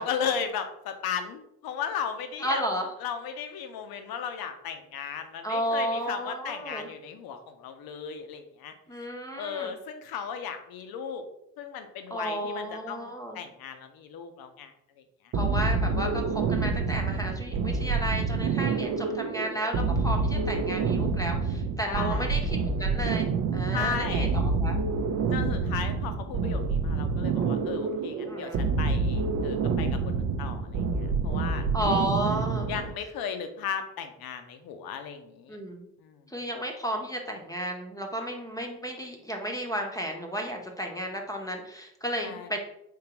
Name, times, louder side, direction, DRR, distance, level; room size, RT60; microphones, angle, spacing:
voice 1, 0.0-2.6 3.0-9.1 9.4-11.2 11.6-14.7 15.0-15.3 21.9-22.3 23.7-24.3 25.3-31.7 32.7-35.6 36.0-36.2 42.2-42.5, left 7 dB, 60° left, 7 dB, 0.7 m, -36 dB
voice 2, 2.4-2.9 5.4-6.9 8.9-9.7 12.1-13.4 15.3-23.3 23.5-24.8 25.4-25.6 28.3-28.7 31.7-32.7 35.5-35.9 36.3-42.6, equal, 10° left, 2 dB, 0.8 m, -33 dB
sound 1, 15.3-32.9, right 4 dB, 45° right, 0.5 m, -27 dB
3.7 x 2.9 x 2.9 m, 0.78 s
hypercardioid pair, 50°, 42 cm